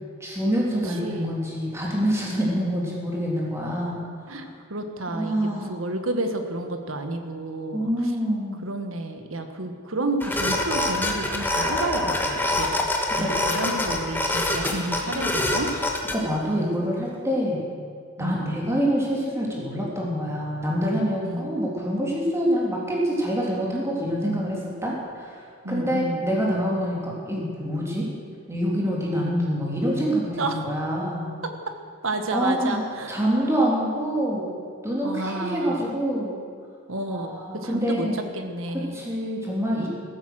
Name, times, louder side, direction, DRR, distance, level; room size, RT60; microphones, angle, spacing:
voice 1, 0.2-4.4 5.1-5.8 7.7-8.6 13.2-13.3 14.3-14.4 16.1-17.6 18.2-28.1 28.5-31.4 32.3-34.5 34.8-36.4 37.1-38.2 38.7-39.9, equal, 15° right, -4 dB, 3.3 m, -26 dB
voice 2, 0.9-1.3 4.3-7.9 8.6-12.7 13.2-15.7 18.2-18.5 21.2-21.5 25.6-26.2 30.4-30.6 31.4-31.7 32.0-33.2 35.0-36.0 36.9-39.0, right 2 dB, 65° right, 6 dB, 1.5 m, -31 dB
sound 1, 10.2-16.2, left 1 dB, 10° left, 1.4 m, -25 dB
15.5 x 13.5 x 6.4 m, 2.2 s
head